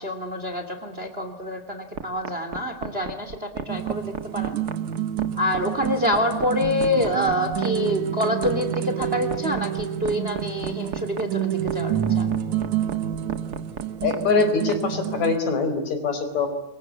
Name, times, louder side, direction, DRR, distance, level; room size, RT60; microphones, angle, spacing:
voice 1, 0.0-4.6 5.4-12.3, left 1 dB, 20° right, 8 dB, 2.6 m, -27 dB
sound 1, 1.9-14.8, right 6 dB, 40° right, 1.6 m, -33 dB
sound 2, 3.7-15.4, right 10 dB, 70° right, 2.5 m, -28 dB
voice 2, 14.0-16.5, left 4 dB, 60° left, 8 dB, 5.7 m, -23 dB
28.0 x 24.5 x 8.5 m, 0.90 s
omnidirectional pair, 3.6 m